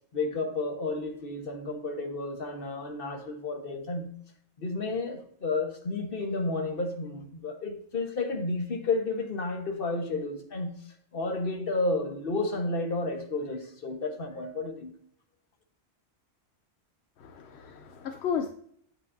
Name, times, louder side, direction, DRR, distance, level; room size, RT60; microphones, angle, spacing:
voice 1, 0.1-4.1 4.6-10.8 11.1-14.9, left 3 dB, 55° left, 1.4 m, -31 dB
voice 2, 17.2-18.5, left 7 dB, 75° left, 0.9 m, -33 dB
8.8 x 8.3 x 2.6 m
omnidirectional pair, 1.1 m